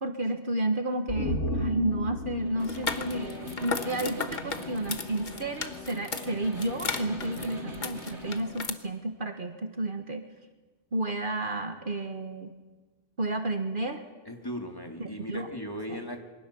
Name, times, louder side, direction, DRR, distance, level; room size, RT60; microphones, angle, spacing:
voice 1, 0.0-10.3 10.9-12.5 13.2-14.0 15.0-15.5 15.9-16.0, right 2 dB, 45° right, 6 dB, 1.6 m, -31 dB
sound 1, 1.1-4.5 4.8-4.9, left 2 dB, 90° left, 1.8 m, -34 dB
Snare drum, 2.4-8.5, equal, 70° right, 3.4 m, -42 dB
sound 2, 2.6-8.7, left 4 dB, 40° left, 1.3 m, -36 dB
voice 2, 14.2-16.2, left 1 dB, 20° left, 3 dB, 3.0 m, -37 dB
27.0 x 23.5 x 7.0 m, 1.3 s
omnidirectional pair, 1.2 m